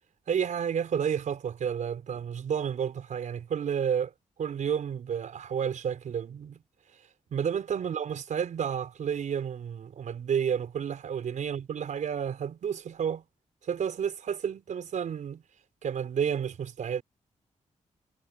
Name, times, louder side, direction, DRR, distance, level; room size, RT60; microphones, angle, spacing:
voice 1, 0.3-4.1 4.4-6.6 7.3-13.2 13.6-15.4 15.8-17.0, right 8 dB, 80° right, 5.4 m, -31 dB
wide cardioid pair, 120°, 13 cm